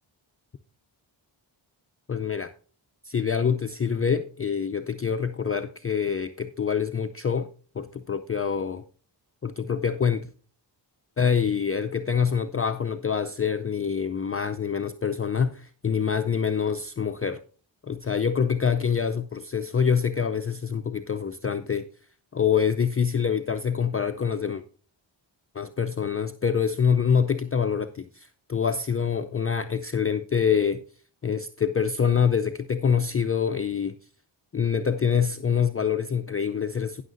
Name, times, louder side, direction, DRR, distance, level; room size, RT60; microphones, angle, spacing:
voice 1, 2.1-2.5 3.0-7.5 7.8-8.8 9.4-10.3 11.2-17.4 17.8-21.9 22.3-24.6 25.5-30.8 31.2-34.0 34.5-37.0, left 7 dB, 30° left, 9 dB, 0.5 m, -25 dB
18.5 x 6.6 x 2.5 m, 0.41 s
cardioid pair, 45°, 49 cm